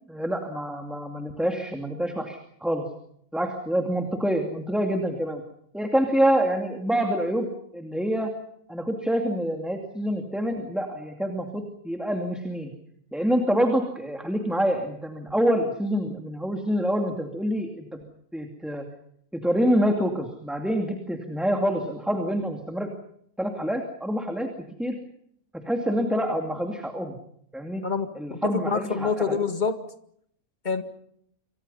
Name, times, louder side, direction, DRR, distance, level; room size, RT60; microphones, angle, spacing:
voice 1, 0.1-2.9 3.3-5.4 5.7-8.3 8.7-12.7 13.1-18.0 18.3-18.9 19.3-22.9 23.4-24.5 24.8-25.0 25.5-27.2 27.5-27.8 28.2-29.2, equal, ahead, 4 dB, 2.4 m, -26 dB
voice 2, 27.8-29.8 30.6-30.8, left 5 dB, 30° left, 8 dB, 2.1 m, -26 dB
28.0 x 25.0 x 5.6 m, 0.69 s
omnidirectional pair, 1.5 m